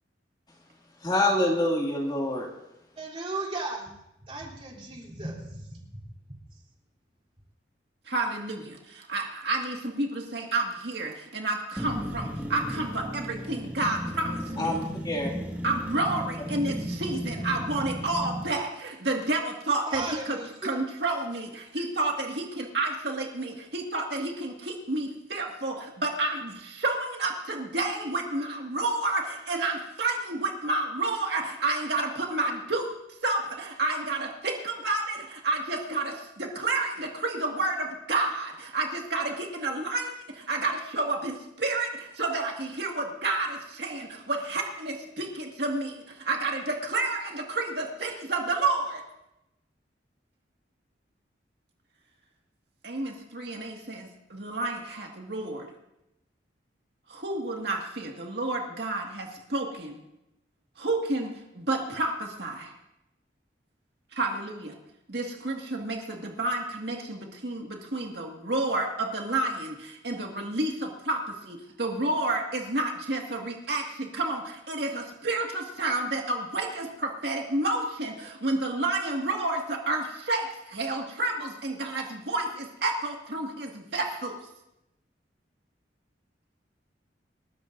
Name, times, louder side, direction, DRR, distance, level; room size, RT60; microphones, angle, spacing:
voice 1, 1.0-2.5 14.6-15.3, left 1 dB, 25° left, -1 dB, 2.4 m, -26 dB
voice 2, 3.0-3.9 4.2-5.8 19.8-20.7, right 2 dB, 30° right, -2 dB, 3.4 m, -36 dB
voice 3, 8.1-14.8 15.6-32.9 33.2-49.0 52.8-55.7 57.1-60.0 60.8-62.7 64.1-64.7 65.1-84.4, right 2 dB, 65° right, 1 dB, 2.0 m, -30 dB
sound 1, 11.8-18.5, equal, 10° right, 1.9 m, -35 dB
28.0 x 13.5 x 2.7 m, 0.88 s
head